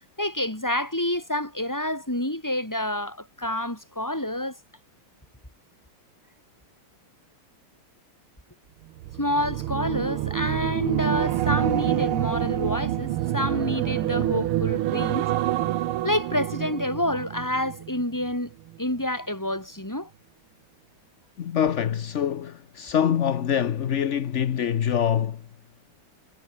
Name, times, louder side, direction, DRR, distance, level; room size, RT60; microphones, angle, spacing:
voice 1, 0.2-4.6 9.2-15.3 16.0-18.5 18.8-20.1, left 1 dB, 10° left, 3.8 m, -28 dB
sound 1, 9.0-18.4 18.7-19.0, right 14 dB, 85° right, 1.7 m, -27 dB
voice 2, 21.4-25.4, left 9 dB, 60° left, 0.7 m, -25 dB
omnidirectional pair, 2.3 m